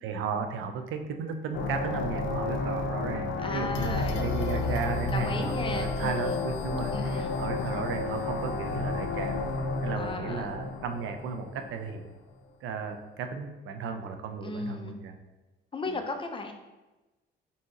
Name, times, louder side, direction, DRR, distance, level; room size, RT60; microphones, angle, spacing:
voice 1, 0.0-9.4 9.8-12.1 12.6-15.2, right 5 dB, 80° right, 6 dB, 0.5 m, -34 dB
Horror Ambiance, 1.5-12.1, left 3 dB, 75° left, 0.5 m, -31 dB
voice 2, 3.4-4.8 5.1-6.4 6.9-7.8 10.0-10.5 14.4-15.0 15.7-16.5, left 3 dB, 25° left, 5 dB, 0.5 m, -37 dB
3.8 x 2.8 x 3.8 m, 1.1 s
cardioid pair, 90°, 20 cm